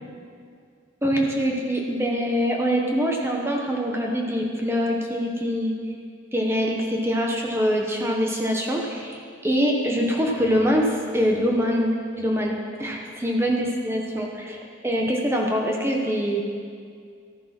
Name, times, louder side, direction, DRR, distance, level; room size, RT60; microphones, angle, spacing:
voice 1, 1.0-5.7 6.3-16.4, equal, 15° right, 0 dB, 1.2 m, -24 dB
14.0 x 10.0 x 6.1 m, 2.2 s
head